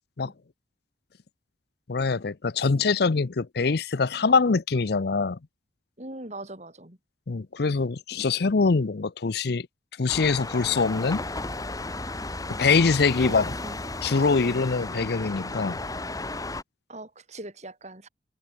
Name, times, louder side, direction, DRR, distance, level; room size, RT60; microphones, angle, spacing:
voice 1, 1.9-5.4 7.3-9.7 10.0-11.2 12.6-13.5 14.0-15.8, left 4 dB, 60° left, 0.6 m, -23 dB
voice 2, 6.0-7.0 13.2-13.8 14.4-14.7 16.9-18.1, right 2 dB, 40° right, 6.1 m, -41 dB
sound 1, 10.1-16.6, left 2 dB, 20° left, 2.1 m, -34 dB
head